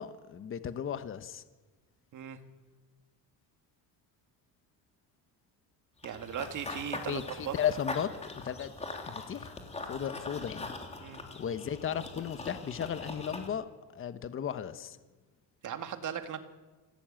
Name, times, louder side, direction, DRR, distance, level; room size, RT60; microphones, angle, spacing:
voice 1, 0.0-1.4 7.1-8.7 9.1-9.6 9.9-10.7 11.3-13.7 13.9-15.0, left 8 dB, 30° left, 12 dB, 1.0 m, -35 dB
Run / Bird vocalization bird call bird song, 6.0-13.5, left 2 dB, 15° left, 3.1 m, -42 dB
voice 2, 6.0-7.5 11.0-11.2 15.6-16.4, right 8 dB, 45° right, 7 dB, 2.2 m, -38 dB
25.5 x 17.0 x 8.9 m, 1.3 s
cardioid pair, 145°, 42 cm